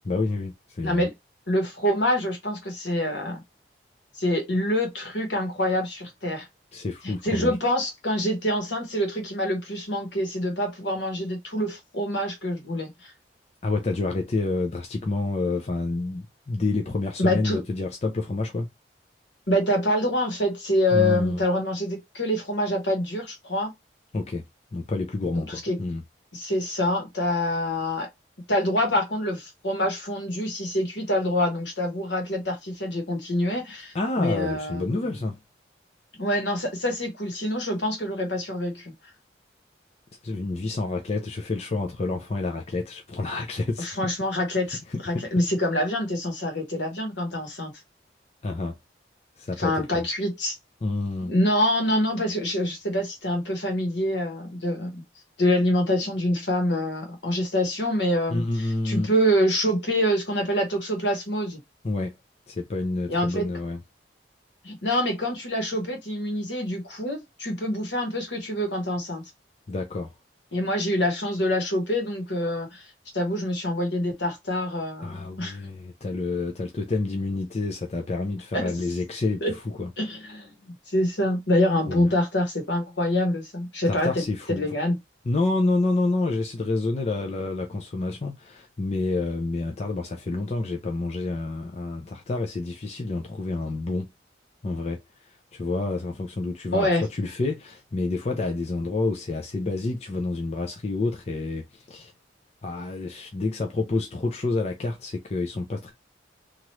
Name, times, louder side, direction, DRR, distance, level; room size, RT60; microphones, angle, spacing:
voice 1, 0.1-1.1 6.7-7.5 13.6-18.7 20.9-21.4 24.1-24.4 24.7-26.0 33.9-35.4 40.2-43.9 44.9-45.2 48.4-48.8 49.4-50.1 50.8-51.3 58.3-59.1 61.8-62.1 62.5-63.8 69.7-70.1 75.0-79.9 81.9-82.1 83.9-84.7 85.3-94.1 94.6-95.0 95.5-102.1 102.6-105.9, left 3 dB, 35° left, 0.5 m, -28 dB
voice 2, 1.5-3.4 4.2-6.5 7.0-12.9 17.2-17.6 19.5-23.7 25.3-25.8 26.3-28.1 28.5-35.1 36.2-38.9 43.8-47.7 49.6-50.6 51.3-55.0 55.4-61.6 63.1-63.5 64.6-69.2 70.5-72.8 73.1-75.6 78.5-78.7 79.4-79.5 80.0-84.2 84.5-85.0 96.7-97.0, left 1 dB, 75° left, 1.3 m, -26 dB
3.0 x 2.5 x 3.0 m
head